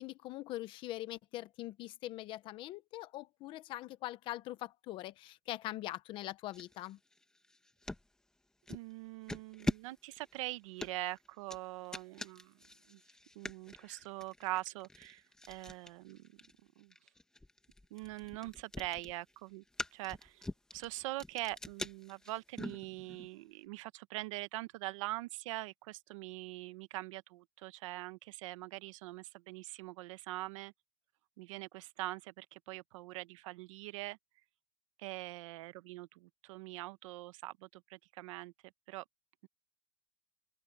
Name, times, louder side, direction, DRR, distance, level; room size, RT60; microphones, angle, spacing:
voice 1, 0.0-7.0, left 16 dB, 25° left, 0.7 m, -42 dB
sound 1, 6.5-8.1 8.7-8.9 9.3-23.3, left 1 dB, 5° left, 1.5 m, -44 dB
voice 2, 8.7-12.6 12.9-13.0 13.3-16.3 16.8-16.9 17.9-19.6 19.9-20.5 20.7-30.7 31.4-34.2 35.0-38.5 38.9-39.0, right 19 dB, 50° right, 1.0 m, -43 dB
open air
supercardioid pair, 175°, 21 cm